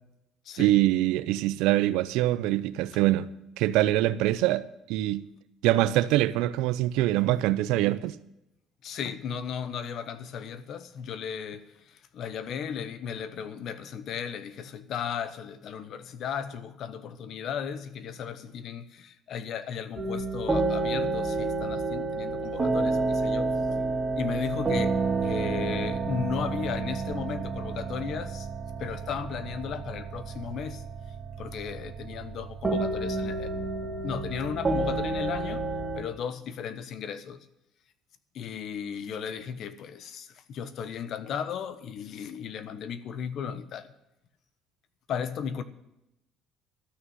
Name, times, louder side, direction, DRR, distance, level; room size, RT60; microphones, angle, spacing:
voice 1, 0.6-3.3 3.6-5.3 5.6-8.2, right 15 dB, 80° right, 0.6 m, -24 dB
voice 2, 8.8-23.8 24.1-25.0 25.2-28.5 28.8-30.8 31.4-33.5 34.0-35.6 35.9-37.4 38.3-43.9 45.1-45.6, left 7 dB, 60° left, 1.1 m, -35 dB
sound 1, 20.0-36.0, right 3 dB, 25° right, 2.3 m, -30 dB
13.0 x 6.3 x 9.4 m
supercardioid pair, 90°, 0 cm